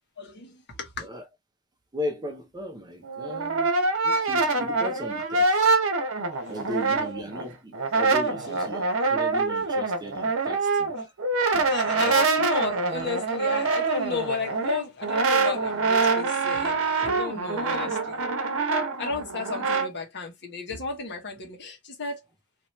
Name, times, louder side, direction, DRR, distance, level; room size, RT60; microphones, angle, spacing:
voice 1, 0.2-1.1 5.2-5.3 6.3-6.5 11.0-11.1 11.5-18.2 19.0-22.2, left 4 dB, 50° left, 1.3 m, -33 dB
voice 2, 1.9-3.7 4.0-5.6 6.5-11.1 11.9-12.5, left 1 dB, 20° right, 0.7 m, -37 dB
Brass instrument, 3.0-7.4 7.7-19.9, right 3 dB, 65° right, 0.8 m, -25 dB
2.9 x 2.9 x 3.1 m
head